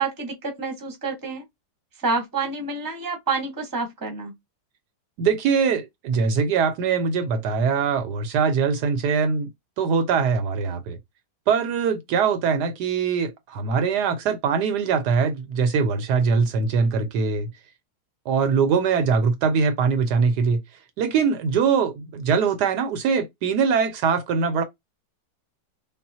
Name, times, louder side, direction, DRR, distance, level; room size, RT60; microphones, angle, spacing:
voice 1, 0.0-1.4 2.0-4.3, right 4 dB, 15° right, 0.8 m, -28 dB
voice 2, 5.2-9.5 9.8-11.0 11.5-17.5 18.3-20.6 21.0-24.6, right 5 dB, 75° right, 1.1 m, -22 dB
5.4 x 2.3 x 2.7 m
omnidirectional pair, 1.9 m